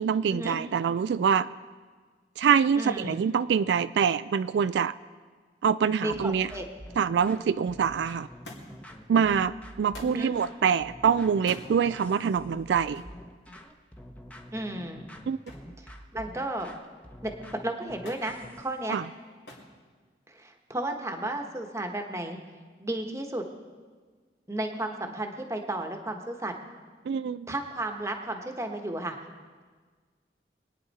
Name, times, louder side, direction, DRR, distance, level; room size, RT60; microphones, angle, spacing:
voice 1, 0.0-1.5 2.4-4.9 5.6-6.5 7.0-8.3 9.1-13.0 15.3-15.4 18.9-19.0 27.1-27.5, right 7 dB, 80° right, 14 dB, 0.3 m, -25 dB
voice 2, 2.8-3.2 6.0-6.6 10.0-10.3 14.5-15.0 15.8-16.7 17.2-17.3 17.6-19.0 20.3-22.4 22.8-23.5 24.5-26.5 27.5-29.2, right 1 dB, 15° right, 4 dB, 1.2 m, -33 dB
sound 1, 6.1-18.8, equal, 10° left, 0.9 m, -47 dB
Thump thud, 8.4-8.9 9.9-10.2 11.3-11.7 12.9-13.2 15.5-15.8 16.1-16.7 18.1-18.3 19.5-19.7 20.7-21.2 22.1-22.2, left 1 dB, 80° left, 2.8 m, -46 dB
24.0 x 9.5 x 4.2 m, 1.5 s
head